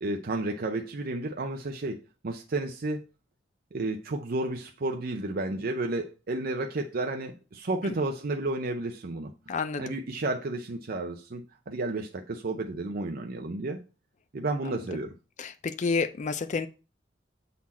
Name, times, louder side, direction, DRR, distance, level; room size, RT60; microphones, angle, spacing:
voice 1, 0.0-3.0 3.7-9.3 9.8-13.8 14.3-15.1, right 2 dB, 50° right, 0.6 m, -32 dB
voice 2, 9.5-10.0 14.7-14.8 15.4-16.7, left 4 dB, 40° left, 0.4 m, -30 dB
7.3 x 4.2 x 4.2 m
head